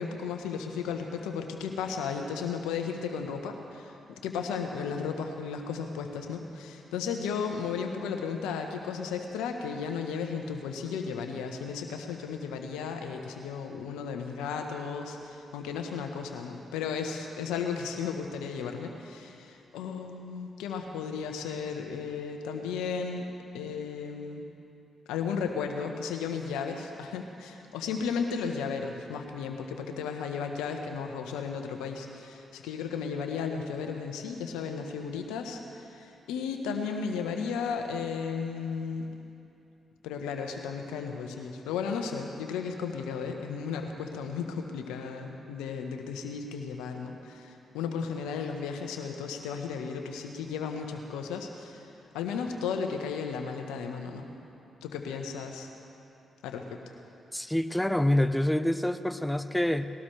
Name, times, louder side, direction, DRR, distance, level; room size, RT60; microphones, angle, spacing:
voice 1, 0.0-23.3 23.5-24.4 25.1-39.1 40.0-54.3 54.8-55.7 56.4-56.8, left 6 dB, 80° left, 4 dB, 1.2 m, -34 dB
voice 2, 57.3-59.9, left 1 dB, 10° left, 10 dB, 0.8 m, -26 dB
20.5 x 17.5 x 3.4 m, 2.7 s
hypercardioid pair, 40°, 0 cm